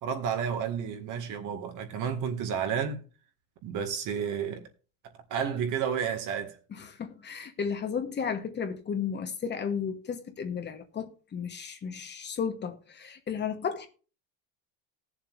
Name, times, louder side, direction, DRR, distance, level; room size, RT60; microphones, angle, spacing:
voice 1, 0.0-3.0 3.6-4.6 5.3-6.6, right 7 dB, 50° right, 2.0 m, -31 dB
voice 2, 6.7-13.9, left 6 dB, 25° left, 1.2 m, -34 dB
19.0 x 7.2 x 2.6 m
supercardioid pair, 130°, 40 cm